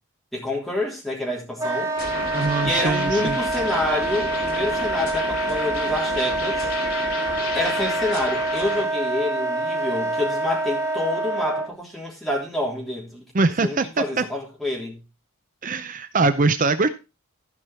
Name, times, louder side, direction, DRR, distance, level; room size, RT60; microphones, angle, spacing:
voice 1, 0.3-1.9 2.6-6.7 7.5-13.2 13.6-15.0, left 1 dB, ahead, 3.2 m, -28 dB
Wind instrument woodwind instrument, 1.6-11.7, right 2 dB, 15° right, 1.8 m, -26 dB
sound 1, 2.0-8.8, left 3 dB, 65° left, 3.0 m, -32 dB
voice 2, 2.3-3.4 13.3-14.2 15.6-16.9, right 3 dB, 35° right, 0.5 m, -22 dB
14.5 x 5.4 x 4.3 m
head